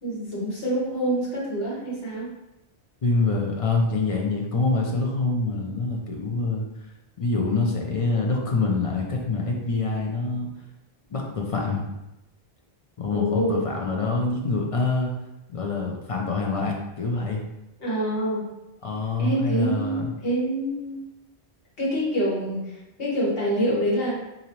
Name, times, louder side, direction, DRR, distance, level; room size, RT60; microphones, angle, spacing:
voice 1, 0.0-2.3 13.1-13.6 17.8-18.5 19.2-21.0 21.8-22.7 23.0-24.2, right 1 dB, 70° left, -6 dB, 1.5 m, -26 dB
voice 2, 3.0-6.6 7.2-10.5 11.1-11.8 13.0-15.1 15.5-17.4 18.8-20.1, left 3 dB, 45° left, -1 dB, 0.5 m, -25 dB
3.9 x 2.7 x 3.0 m, 0.95 s
omnidirectional pair, 1.0 m